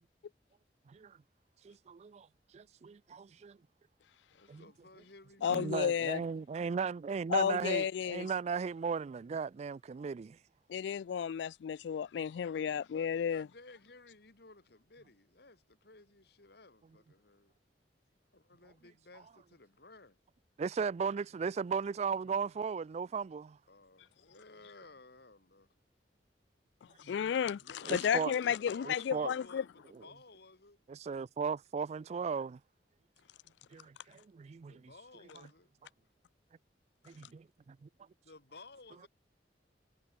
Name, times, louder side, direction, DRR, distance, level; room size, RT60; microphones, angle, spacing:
voice 1, 0.9-1.2 1.6-2.3 2.5-3.6 4.5-4.6 5.5-10.4 20.6-23.6 27.0-27.1 27.9-28.3 28.8-29.3 29.9-30.0 30.9-32.6 33.7-34.9 37.1-37.4, right 5 dB, 40° right, 0.3 m, -36 dB
voice 2, 4.3-6.2 12.5-17.5 18.3-20.2 23.7-25.7 27.3-30.8 34.7-35.7 38.3-39.1, left 3 dB, 65° left, 2.6 m, -56 dB
voice 3, 5.4-6.2 7.3-8.3 10.7-13.5 27.0-29.6, left 8 dB, 80° left, 0.3 m, -32 dB
head